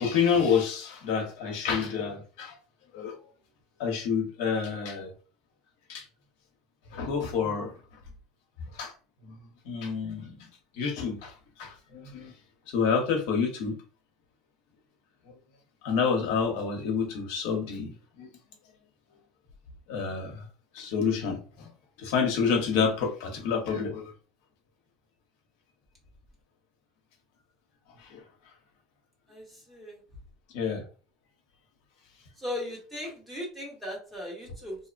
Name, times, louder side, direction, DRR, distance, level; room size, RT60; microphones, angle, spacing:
voice 1, 0.0-2.5 2.9-3.1 3.8-5.1 5.9-6.0 6.9-7.7 8.7-8.9 9.2-9.4 9.6-10.3 10.8-11.3 11.6-12.3 12.7-13.8 15.8-18.3 19.9-20.4 20.7-21.7 22.0-24.1 28.0-28.2 30.5-30.8, left 6 dB, 75° left, 0.8 m, -28 dB
voice 2, 29.3-30.0 32.4-34.8, left 1 dB, 5° right, 1.1 m, -37 dB
2.7 x 2.1 x 2.5 m
cardioid pair, 145°, 0 cm